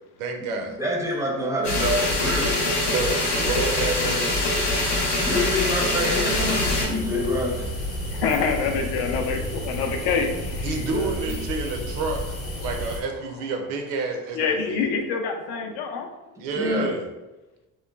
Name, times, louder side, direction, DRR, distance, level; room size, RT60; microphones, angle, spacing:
voice 1, 0.2-0.8 2.8-4.5 10.6-12.2 12.6-14.8 16.4-17.1, right 4 dB, 90° right, 4 dB, 0.6 m, -29 dB
voice 2, 0.8-2.6 5.2-7.7 10.8-11.4 16.5-16.9, left 1 dB, 5° right, -1 dB, 0.5 m, -26 dB
sound 1, 1.6-6.9, left 2 dB, 90° left, 0.9 m, -24 dB
sound 2, 6.3-13.0, equal, 35° left, 0.7 m, -31 dB
voice 3, 8.1-10.8 14.3-16.1, left 5 dB, 65° left, 4 dB, 0.5 m, -26 dB
3.0 x 2.1 x 2.3 m, 1.0 s
supercardioid pair, 90°, 42 cm